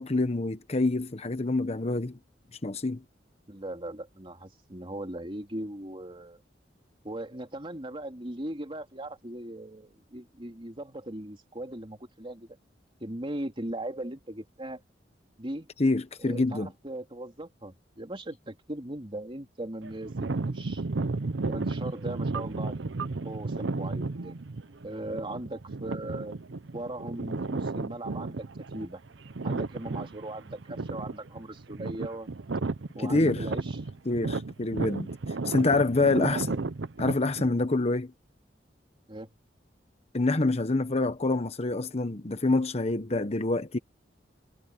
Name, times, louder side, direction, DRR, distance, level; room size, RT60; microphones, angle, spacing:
voice 1, 0.0-2.2 2.6-3.0 15.8-16.7 33.0-33.4 34.1-35.1 35.4-36.5 37.0-38.1 40.1-43.8, left 2 dB, 35° left, 1.0 m, -26 dB
voice 2, 3.5-6.4 7.0-12.5 13.0-14.8 15.4-15.7 16.2-20.8 21.5-22.9 23.2-24.4 24.8-26.4 26.7-29.0 29.4-32.3 32.9-33.8 35.4-35.5 36.1-36.6 39.1-39.3, right 1 dB, 30° right, 3.1 m, -39 dB
sound 1, 19.8-37.5, right 3 dB, 85° right, 0.7 m, -33 dB
head